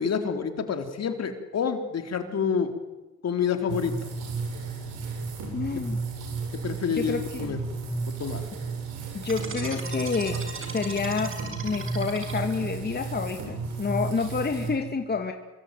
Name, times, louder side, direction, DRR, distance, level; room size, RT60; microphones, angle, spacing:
voice 1, 0.0-2.7 3.2-4.1 5.7-5.8 6.6-7.6 8.2-8.4, left 6 dB, 55° left, 6 dB, 3.8 m, -28 dB
sound 1, 3.7-14.7, right 4 dB, 85° right, 7.6 m, -33 dB
voice 2, 5.5-6.0 6.9-7.5 9.1-10.4 10.7-11.3 11.6-15.3, left 5 dB, 35° left, 5 dB, 2.5 m, -28 dB
sound 2, 9.2-12.8, right 5 dB, 45° right, 6.0 m, -38 dB
27.0 x 23.0 x 9.3 m, 1.1 s
cardioid pair, 90°, 30 cm